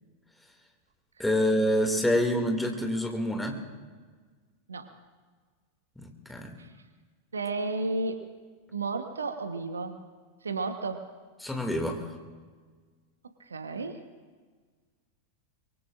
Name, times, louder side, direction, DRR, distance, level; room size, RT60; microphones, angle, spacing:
voice 1, 1.2-3.6 6.0-6.5 11.4-12.0, equal, 5° left, 2 dB, 2.3 m, -27 dB
voice 2, 7.3-8.2 8.7-10.0 10.4-11.0 13.5-14.0, right 3 dB, 75° right, 8 dB, 1.1 m, -32 dB
24.0 x 23.0 x 2.5 m, 1.5 s
figure-of-eight pair, 90°, 0 cm